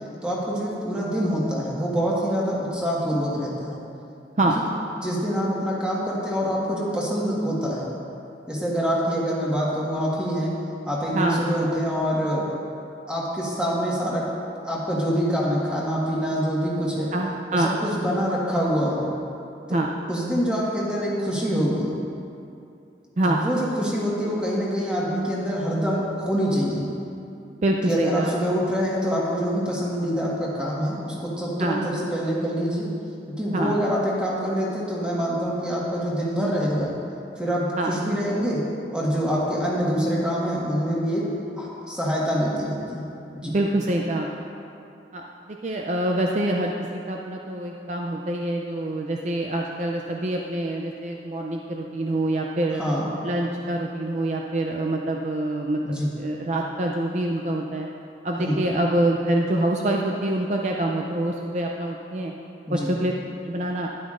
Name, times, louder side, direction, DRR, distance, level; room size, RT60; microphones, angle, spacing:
voice 1, 0.2-3.8 4.5-4.6 5.0-7.9 8.5-10.5 10.9-12.5 13.1-14.3 14.6-17.1 17.5-19.1 20.1-21.9 23.3-26.9 27.8-32.9 33.3-36.9 37.4-38.6 38.9-41.2 41.6-43.1 43.3-43.5 52.8-53.1 55.8-56.1 58.4-58.6 62.7-62.9, equal, 5° right, -6 dB, 1.5 m, -25 dB
voice 2, 17.1-17.7 19.7-19.9 23.2-23.5 27.6-28.3 31.6-31.8 33.5-33.8 37.8-37.9 43.4-44.5 45.1-52.8 53.2-57.9 58.2-62.3 62.7-63.1 63.4-63.9, right 1 dB, 40° right, 0 dB, 0.4 m, -25 dB
12.5 x 10.5 x 2.5 m, 2.7 s
head